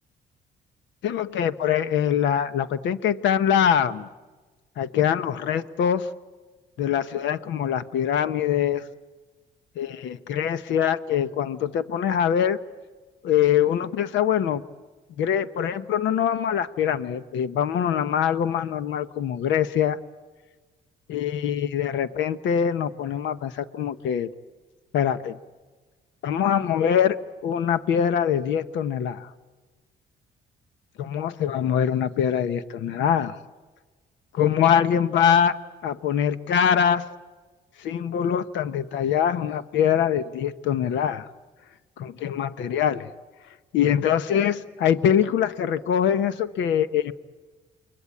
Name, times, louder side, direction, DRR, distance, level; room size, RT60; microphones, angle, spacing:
voice 1, 1.0-4.1 4.8-6.1 6.8-8.8 9.8-12.6 13.2-14.6 15.2-20.0 21.1-24.3 24.9-25.4 26.2-27.2 27.4-29.3 31.0-33.4 34.3-35.6 35.8-37.0 37.8-41.3 42.0-43.1 43.7-47.1, left 9 dB, 80° left, 12 dB, 1.0 m, -23 dB
28.5 x 23.0 x 8.7 m, 1.3 s
cardioid pair, 80°, 19 cm